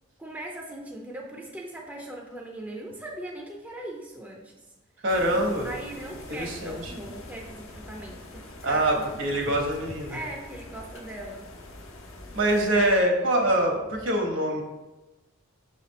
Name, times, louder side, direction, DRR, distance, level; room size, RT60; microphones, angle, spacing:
voice 1, 0.2-4.5 5.6-9.3 10.1-11.5, right 1 dB, 10° right, -1 dB, 0.5 m, -39 dB
voice 2, 5.0-5.7 6.3-6.9 8.6-10.2 12.3-14.6, right 1 dB, 65° right, 2 dB, 1.2 m, -24 dB
sound 1, 5.1-13.0, left 1 dB, 85° left, 1.1 m, -44 dB
6.0 x 4.2 x 4.1 m, 1.1 s
head